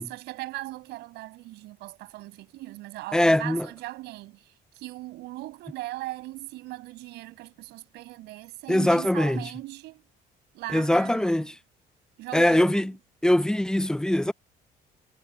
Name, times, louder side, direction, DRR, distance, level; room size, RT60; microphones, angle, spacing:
voice 1, 0.0-10.0 10.5-11.5 12.2-12.9, right 18 dB, 85° right, 7.4 m, -39 dB
voice 2, 3.1-3.7 8.7-9.4 10.7-11.5 12.3-12.9 13.2-14.3, left 1 dB, 5° left, 0.6 m, -22 dB
cardioid pair, 110°, 17 cm